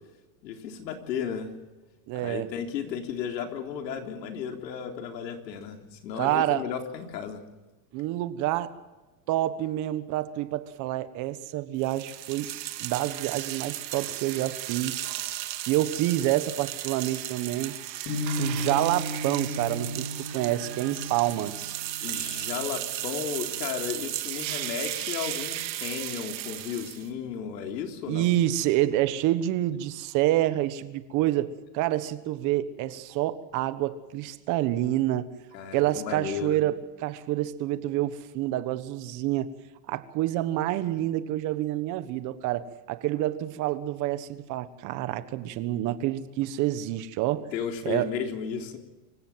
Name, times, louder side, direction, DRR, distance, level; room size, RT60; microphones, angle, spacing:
voice 1, 0.4-1.5 2.1-7.4 18.5-18.7 22.0-28.3 35.5-36.6 47.5-48.8, left 7 dB, 85° left, 4 dB, 3.9 m, -34 dB
voice 2, 2.1-2.5 6.2-6.7 7.9-8.7 9.3-12.5 12.8-15.1 15.7-17.7 18.4-21.8 28.1-35.3 35.7-39.5 39.9-47.5 47.8-48.1, right 14 dB, 35° right, 13 dB, 1.4 m, -28 dB
sound 1, 11.8-27.1, right 14 dB, 85° right, 2.3 m, -35 dB
sound 2, 18.1-24.1, equal, 35° left, 6.7 m, -36 dB
25.5 x 16.0 x 7.5 m, 1.2 s
supercardioid pair, 155°, 49 cm